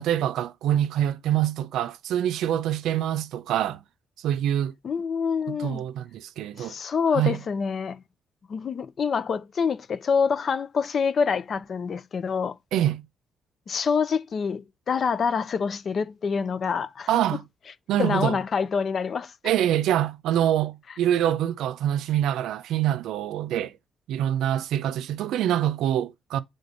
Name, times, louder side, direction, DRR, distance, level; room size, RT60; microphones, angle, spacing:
voice 1, 0.0-3.8 4.2-4.7 5.5-6.7 7.1-7.4 12.7-13.1 17.1-17.4 17.9-18.4 19.4-23.7 24.1-26.4, right 11 dB, 85° right, 0.5 m, -25 dB
voice 2, 4.8-5.8 6.6-8.0 8.5-12.6 13.7-17.1 18.0-19.3, left 6 dB, 50° left, 0.6 m, -26 dB
6.8 x 3.7 x 3.9 m
cardioid pair, 90°, 0 cm